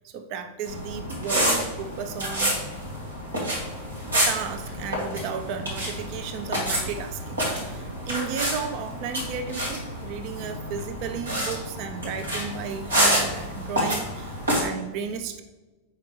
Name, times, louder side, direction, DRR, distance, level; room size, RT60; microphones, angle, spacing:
voice 1, 0.0-2.6 4.3-15.4, right 6 dB, 45° right, 7 dB, 0.6 m, -34 dB
sound 1, 0.6-14.6, right 1 dB, 75° right, 1.9 m, -28 dB
7.5 x 5.1 x 3.2 m, 1.2 s
figure-of-eight pair, 90°, 0 cm